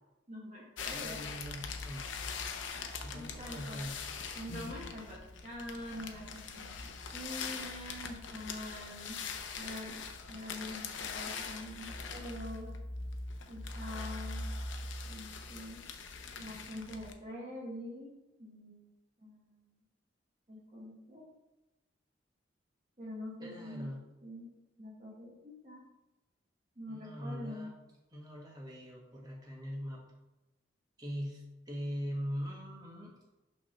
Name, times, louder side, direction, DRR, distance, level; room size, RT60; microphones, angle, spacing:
voice 1, 0.3-1.2 3.1-3.8 4.3-9.2 9.6-12.7 13.5-14.5 15.1-15.9 16.4-18.9 19.2-19.7 20.5-21.3 23.0-23.9 24.2-25.8 26.8-27.7, left 1 dB, 35° right, -5 dB, 1.1 m, -45 dB
sound 1, 0.8-17.1, left 4 dB, 85° left, 0.7 m, -42 dB
voice 2, 0.9-2.1 3.0-3.9 23.4-24.0 26.9-27.7 28.1-30.0 31.0-33.1, equal, 20° right, -3 dB, 1.6 m, -41 dB
6.0 x 3.5 x 5.8 m, 1.0 s
head